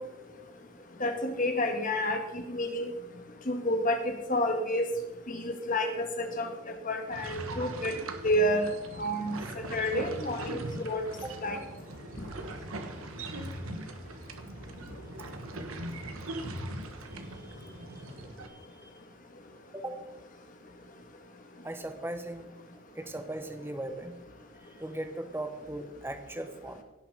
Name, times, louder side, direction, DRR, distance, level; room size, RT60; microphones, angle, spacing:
voice 1, 1.0-2.9 3.5-4.0 4.3-4.9 5.3-6.5 6.8-7.9 8.2-8.7 9.0-9.4 9.7-11.0 11.4-11.6, left 1 dB, 35° left, 5 dB, 1.4 m, -29 dB
sound 1, 7.1-18.5, right 1 dB, 75° right, 1.4 m, -40 dB
voice 2, 17.0-18.0 18.4-18.9 19.7-20.0 21.6-22.5 22.9-24.1 24.6-26.8, right 1 dB, 10° right, 7 dB, 0.9 m, -39 dB
17.0 x 5.8 x 5.2 m, 1.1 s
head